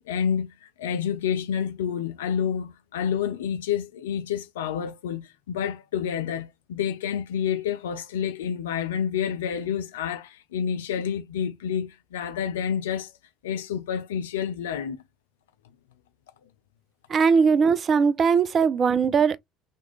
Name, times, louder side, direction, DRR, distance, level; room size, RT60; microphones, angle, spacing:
voice 1, 0.0-13.1 13.4-15.0 18.9-19.0, left 8 dB, 75° left, 0.4 m, -29 dB
voice 2, 17.1-19.4, right 5 dB, 40° right, 0.4 m, -20 dB
3.0 x 2.4 x 3.1 m
figure-of-eight pair, 65°, 0 cm